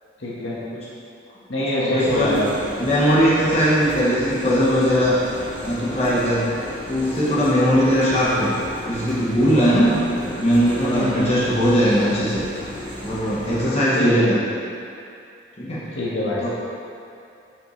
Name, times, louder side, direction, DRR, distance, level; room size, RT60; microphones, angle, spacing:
voice 1, 0.2-0.6 1.5-2.5 10.8-11.6 13.9-14.3 15.9-16.4, left 1 dB, 70° left, -6 dB, 1.4 m, -24 dB
voice 2, 1.8-2.3 2.8-5.2 5.6-6.6 6.9-12.5 13.0-14.3 15.6-15.9 16.4-16.5, equal, 30° left, -9 dB, 1.1 m, -19 dB
sound 1, 2.0-13.7, equal, 25° right, 0.8 m, -35 dB
7.2 x 5.5 x 3.2 m, 2.6 s
head